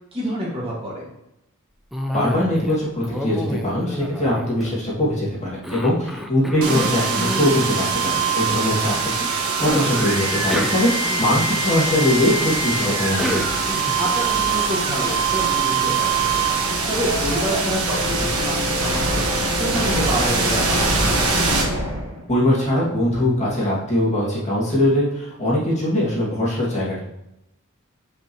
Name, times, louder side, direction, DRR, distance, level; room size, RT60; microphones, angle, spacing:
voice 1, 0.1-1.1 4.2-4.4 8.6-8.8 14.0-21.2, right 1 dB, 25° right, -5 dB, 1.8 m, -28 dB
Cough, 1.9-2.8 3.0-5.1 5.6-7.6 9.6-11.6 12.8-14.1, left 1 dB, ahead, 0.6 m, -29 dB
voice 2, 2.1-13.4 22.3-27.0, left 1 dB, 30° left, -6 dB, 2.1 m, -21 dB
sound 1, 6.6-22.4, right 3 dB, 85° right, 1.3 m, -22 dB
7.4 x 5.7 x 3.0 m, 0.85 s
head